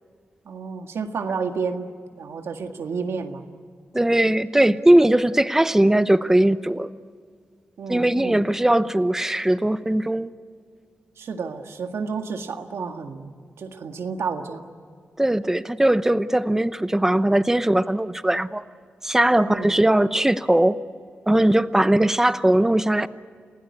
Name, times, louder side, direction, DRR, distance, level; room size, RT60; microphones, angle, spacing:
voice 1, 0.5-1.9 2.2-3.4 7.8-8.5 11.2-14.7 19.4-19.8, right 5 dB, 90° right, 5 dB, 1.8 m, -31 dB
voice 2, 3.9-6.9 7.9-10.3 15.2-18.6 19.0-20.8 21.3-23.1, right 1 dB, 10° right, 13 dB, 0.8 m, -19 dB
30.0 x 16.5 x 9.8 m, 2.1 s
wide cardioid pair, 105°, 4 cm